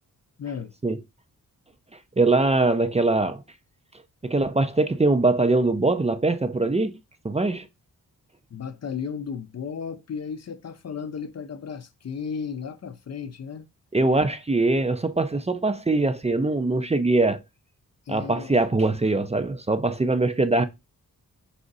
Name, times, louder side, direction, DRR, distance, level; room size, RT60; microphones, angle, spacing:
voice 1, 0.4-0.7 8.5-13.7 18.1-18.6, left 6 dB, 45° left, 0.5 m, -34 dB
voice 2, 2.2-3.4 4.2-7.0 7.2-7.7 13.9-17.4 18.1-20.6, right 2 dB, 20° right, 0.5 m, -22 dB
4.9 x 2.5 x 3.9 m
cardioid pair, 50°, 35 cm